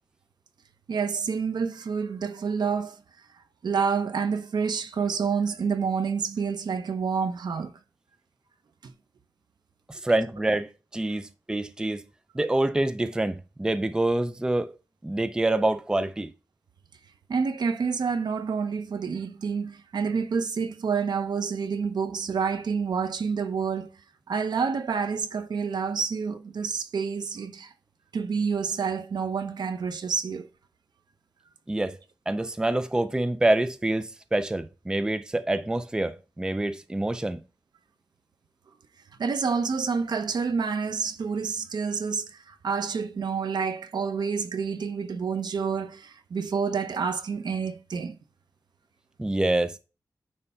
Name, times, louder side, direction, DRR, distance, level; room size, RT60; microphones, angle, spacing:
voice 1, 0.9-3.0 3.6-7.7 8.8-8.9 17.3-23.9 24.3-27.7 28.1-30.5 39.2-48.2, right 5 dB, 75° right, 0.8 m, -28 dB
voice 2, 9.9-12.0 12.3-14.7 15.0-16.3 31.7-32.0 32.3-37.4 49.2-49.7, right 2 dB, 10° right, 0.5 m, -26 dB
9.6 x 3.4 x 5.6 m
wide cardioid pair, 165°, 7 cm